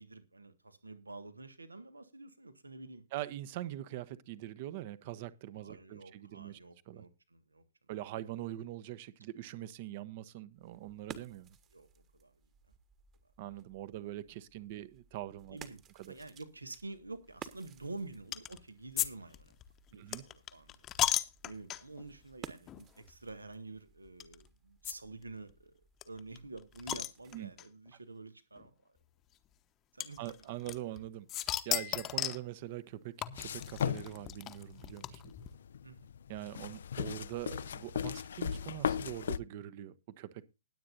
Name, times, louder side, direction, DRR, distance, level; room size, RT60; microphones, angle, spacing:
voice 1, 0.0-3.0 5.6-7.6 11.7-12.3 15.5-15.8 16.1-19.5 19.9-20.8 21.4-25.7 26.0-28.7 29.9-30.3 35.8-36.0, right 2 dB, 75° right, 1.8 m, -48 dB
voice 2, 3.1-6.6 6.9-7.0 7.9-11.6 13.4-15.6 16.0-16.1 19.9-20.2 27.3-27.5 30.2-31.3 31.6-33.1 33.4-35.3 36.3-40.4, right 14 dB, 40° right, 1.0 m, -43 dB
sound 1, 10.5-27.6, right 8 dB, 20° right, 1.5 m, -55 dB
sound 2, 18.3-18.6 19.0-19.1 19.3-22.0 22.7-22.8 23.1-23.2 24.2-24.3 24.8-24.9 25.2-25.3 25.5-25.6 26.0-27.7 28.6-28.7 30.0-31.0 31.3-32.5 33.2-35.5, left 13 dB, 20° left, 1.0 m, -35 dB
sound 3, 33.3-39.4, left 8 dB, 55° left, 0.5 m, -37 dB
20.0 x 8.7 x 2.6 m
figure-of-eight pair, 115°, 0 cm